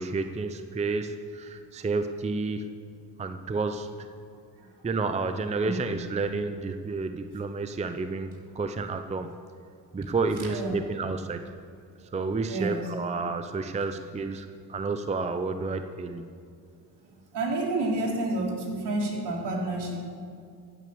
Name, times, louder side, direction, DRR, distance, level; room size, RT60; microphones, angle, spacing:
voice 1, 0.0-2.7 3.2-3.9 4.8-9.3 9.9-11.4 12.1-16.2, right 3 dB, 15° right, 8 dB, 0.6 m, -30 dB
voice 2, 10.5-10.9 12.5-12.9 17.3-20.0, right 2 dB, 60° right, -1 dB, 3.8 m, -29 dB
15.5 x 9.4 x 7.1 m, 2.3 s
cardioid pair, 110°, 44 cm